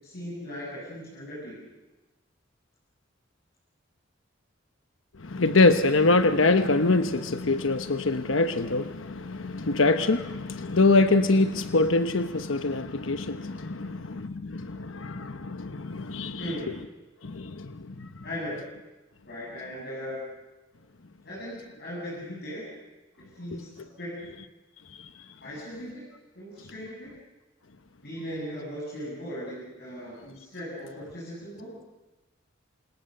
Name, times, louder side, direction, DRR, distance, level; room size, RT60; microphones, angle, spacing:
voice 1, 0.0-1.5 16.4-16.7 18.2-18.5 19.2-20.3 21.2-22.6 23.3-24.3 25.4-26.0 26.3-27.1 28.0-31.7, equal, 55° left, 7.9 m, -38 dB
voice 2, 5.2-16.4 17.2-18.1, left 3 dB, 85° left, 1.0 m, -24 dB
29.0 x 26.5 x 6.7 m
head